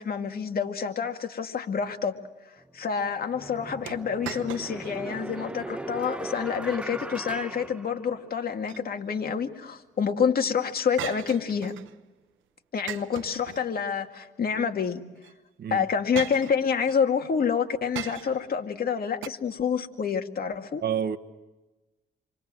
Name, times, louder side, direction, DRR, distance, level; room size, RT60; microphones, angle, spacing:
voice 1, 0.0-2.2 2.7-11.7 12.7-15.0 15.7-20.8, left 6 dB, 50° left, 2.2 m, -28 dB
sound 1, 2.6-2.7 3.3-8.5, right 1 dB, 5° right, 1.0 m, -38 dB
sound 2, 3.9-5.0 5.4-5.5 6.1-6.5 8.4-9.2 11.0-12.0 12.9-14.0 15.2-15.3 16.1-17.0 17.9-18.5 19.2-19.3, right 13 dB, 80° right, 0.9 m, -39 dB
voice 2, 20.8-21.2, right 8 dB, 55° right, 1.3 m, -28 dB
28.5 x 24.5 x 7.7 m
cardioid pair, 90°, 20 cm